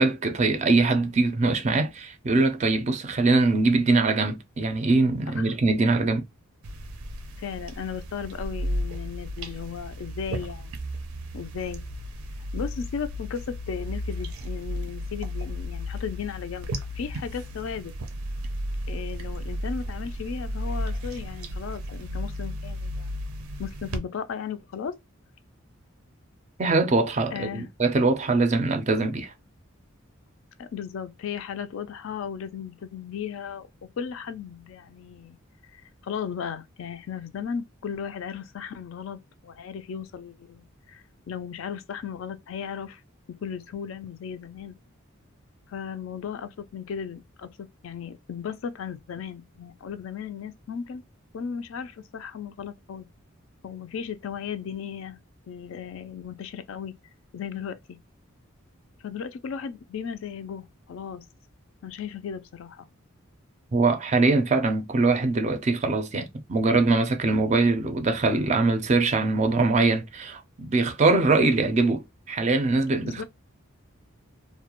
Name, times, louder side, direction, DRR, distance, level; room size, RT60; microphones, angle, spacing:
voice 1, 0.0-6.2 26.6-29.3 63.7-73.2, right 3 dB, 30° right, 0.4 m, -22 dB
sound 1, 6.6-24.0, equal, 90° right, 0.5 m, -34 dB
voice 2, 7.4-10.8 11.3-11.8 12.5-16.7 17.0-17.9 18.9-23.1 23.6-25.0 27.3-27.7 30.6-33.7 34.0-35.4 35.7-43.0 43.4-44.8 45.7-47.5 47.8-51.0 51.3-53.1 53.6-55.2 55.5-56.9 57.3-58.0 59.0-61.2 61.8-62.9 73.0-73.2, left 7 dB, 65° left, 0.3 m, -36 dB
2.3 x 2.1 x 2.9 m
head